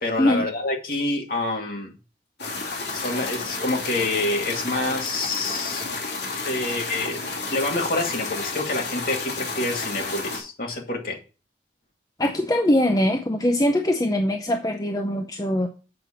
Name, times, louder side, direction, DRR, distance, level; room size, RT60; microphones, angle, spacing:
voice 1, 0.0-1.9 2.9-5.8 6.5-11.2, left 2 dB, 50° left, 1 dB, 2.1 m, -27 dB
sound 1, 2.4-10.4, left 3 dB, 65° left, 2.8 m, -31 dB
voice 2, 12.2-15.7, left 1 dB, 20° left, 4 dB, 0.6 m, -22 dB
7.7 x 5.3 x 5.7 m, 0.33 s
head